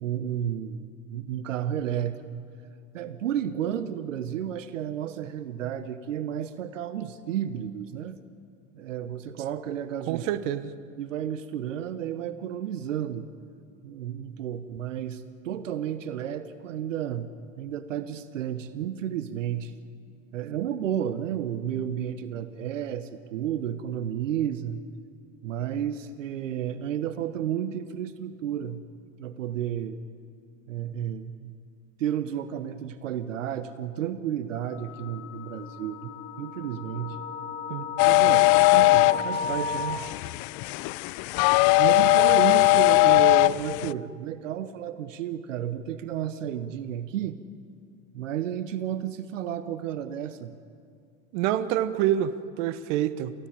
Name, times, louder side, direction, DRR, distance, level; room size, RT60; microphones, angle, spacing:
voice 1, 0.0-2.4 2.9-8.2 8.7-10.2 11.0-13.2 13.8-17.3 17.6-19.7 20.3-24.8 25.4-28.8 29.2-30.0 30.7-31.5 32.0-36.1 36.4-37.2 38.0-38.5 38.7-40.0 41.8-47.4 48.1-50.5, right 10 dB, 90° right, 12 dB, 1.0 m, -32 dB
voice 2, 10.1-10.7 37.7-37.9 51.3-53.3, right 11 dB, 70° right, 14 dB, 1.1 m, -27 dB
sound 1, 34.5-40.0, left 4 dB, 35° left, 2.1 m, -35 dB
sound 2, 38.0-43.9, left 21 dB, 55° left, 0.5 m, -20 dB
28.5 x 15.5 x 8.8 m, 2.3 s
hypercardioid pair, 90°, 37 cm